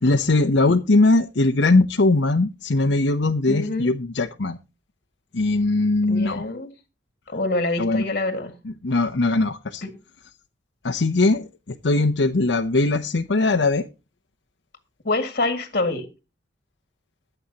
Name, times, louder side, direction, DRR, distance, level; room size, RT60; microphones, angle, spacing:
voice 1, 0.0-4.6 5.3-6.5 7.8-8.0 8.8-9.8 10.8-13.9, left 2 dB, 80° left, 0.8 m, -20 dB
voice 2, 3.5-3.9 6.1-6.7 7.3-8.5 9.8-9.9 15.0-16.1, left 2 dB, 50° left, 2.1 m, -26 dB
22.0 x 7.9 x 2.9 m
head